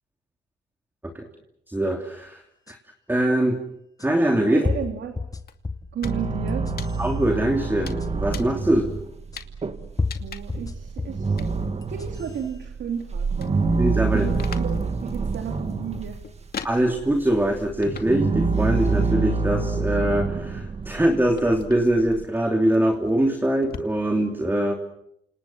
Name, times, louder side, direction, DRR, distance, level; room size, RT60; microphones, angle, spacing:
voice 1, 1.7-2.4 2.7-2.8 3.1-3.6 4.0-4.6 7.0-8.8 13.8-14.3 16.6-24.7, right 1 dB, 10° right, 3 dB, 3.0 m, -22 dB
sound 1, 2.7-2.8 4.0-4.1 4.6-6.0 6.5-7.0 8.0-8.1 9.3-9.4 10.0-11.3 11.8-12.4, left 3 dB, 15° left, 1.6 m, -30 dB
voice 2, 4.5-5.2 5.9-6.7 8.7-9.0 10.2-13.6 14.0-16.2, right 7 dB, 65° right, 5 dB, 2.9 m, -34 dB
sound 2, 5.5-6.2 6.5-7.3 7.9-8.7 9.4-9.6 10.1-10.7 11.4-11.5 12.0-13.0 13.3-17.3 17.8-18.3 18.7-19.3 19.9-23.8, left 7 dB, 50° left, 2.5 m, -42 dB
sound 3, 6.0-16.3 16.6-22.2, right 4 dB, 30° right, 2.3 m, -27 dB
28.5 x 27.5 x 6.2 m, 0.80 s
cardioid pair, 90°, 20 cm